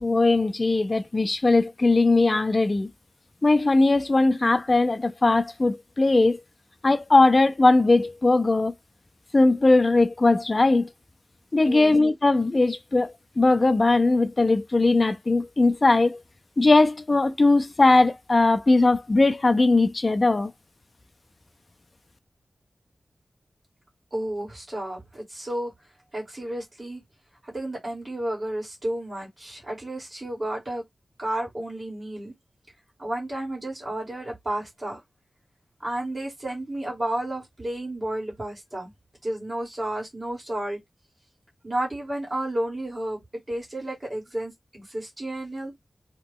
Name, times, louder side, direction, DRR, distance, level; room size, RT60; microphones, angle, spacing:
voice 1, 0.0-2.9 3.4-6.4 6.8-8.7 9.3-10.9 11.5-16.2 16.6-20.5, left 2 dB, 40° left, 0.4 m, -20 dB
voice 2, 24.1-25.7 26.1-27.0 27.4-30.8 31.2-32.3 33.0-35.0 35.8-38.9 39.2-40.8 41.6-43.2 43.5-45.8, right 1 dB, 30° right, 1.8 m, -32 dB
2.9 x 2.3 x 3.5 m
wide cardioid pair, 90°, 0 cm